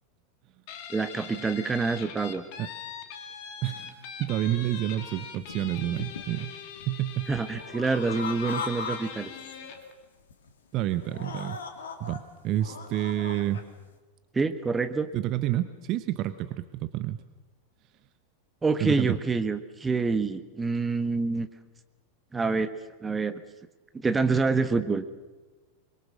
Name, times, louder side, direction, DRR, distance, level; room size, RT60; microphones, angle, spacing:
Guitar, 0.7-9.9, left 7 dB, 45° left, 2.6 m, -42 dB
voice 1, 0.9-2.4 7.3-9.3 14.3-15.1 18.6-21.5 22.3-22.7 23.0-23.4 23.9-25.1, right 4 dB, 15° right, 10 dB, 1.4 m, -27 dB
voice 2, 3.6-6.5 6.9-7.3 10.7-11.6 12.0-13.6 15.1-17.2 18.8-19.1, right 13 dB, 40° right, 13 dB, 1.0 m, -29 dB
sound 1, 4.7-4.8 5.3-6.4 6.8-9.0 9.2-9.9 10.3-10.5 11.0-12.2 12.5-13.6, left 6 dB, 65° left, 2.4 m, -39 dB
24.0 x 22.0 x 6.5 m, 1.2 s
figure-of-eight pair, 90°, 0 cm